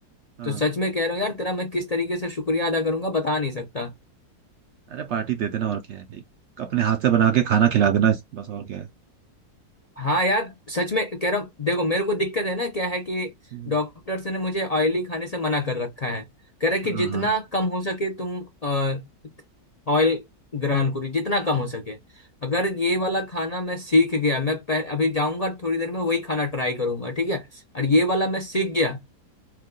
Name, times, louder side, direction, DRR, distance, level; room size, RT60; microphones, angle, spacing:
voice 1, 0.4-3.9 10.0-13.3 13.7-16.2 16.6-19.0 19.9-20.2 20.5-22.0 22.4-29.0, left 2 dB, 50° left, 0.4 m, -25 dB
voice 2, 4.9-6.1 6.6-8.8 16.9-17.2, right 9 dB, 70° right, 0.6 m, -23 dB
4.5 x 2.3 x 3.7 m
omnidirectional pair, 1.6 m